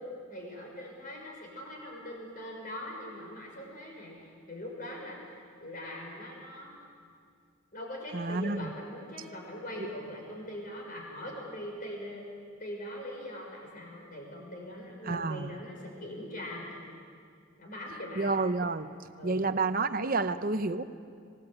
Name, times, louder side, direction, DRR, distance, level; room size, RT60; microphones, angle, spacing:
voice 1, 0.0-5.2 5.6-6.7 7.7-12.3 12.6-17.0 17.6-18.3 19.2-19.5, left 1 dB, 40° left, 0 dB, 6.0 m, -42 dB
voice 2, 8.1-8.7 9.8-9.9 15.0-15.6 18.2-18.9 19.2-20.8, right 3 dB, 45° right, 10 dB, 0.9 m, -29 dB
27.0 x 19.0 x 8.9 m, 2.3 s
head